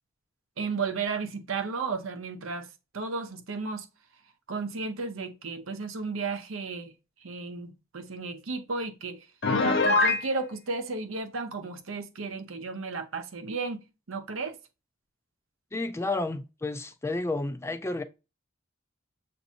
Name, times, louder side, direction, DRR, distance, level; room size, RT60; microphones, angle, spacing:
voice 1, 0.6-2.7 2.9-3.9 4.5-6.9 7.2-9.3 9.6-14.6, right 4 dB, 80° right, 0.7 m, -34 dB
Piano, 9.4-10.2, left 3 dB, 55° left, 0.7 m, -22 dB
voice 2, 15.7-18.0, left 2 dB, 15° left, 0.3 m, -31 dB
7.1 x 2.6 x 2.8 m
head